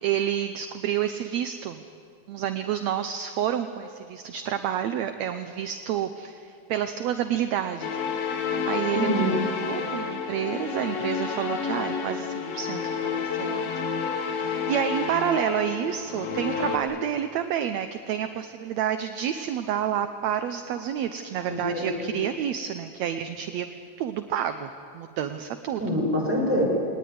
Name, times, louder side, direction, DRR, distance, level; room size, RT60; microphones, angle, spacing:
voice 1, 0.0-1.8 2.3-8.0 8.7-9.3 9.5-13.6 14.2-23.7 24.0-25.8, right 9 dB, 70° right, 8 dB, 1.8 m, -29 dB
sound 1, 7.8-16.8, left 5 dB, 55° left, 2.6 m, -30 dB
voice 2, 9.0-9.3 21.5-22.2 25.8-26.6, equal, 5° right, -2 dB, 6.3 m, -25 dB
21.5 x 19.5 x 9.6 m, 2.3 s
omnidirectional pair, 3.8 m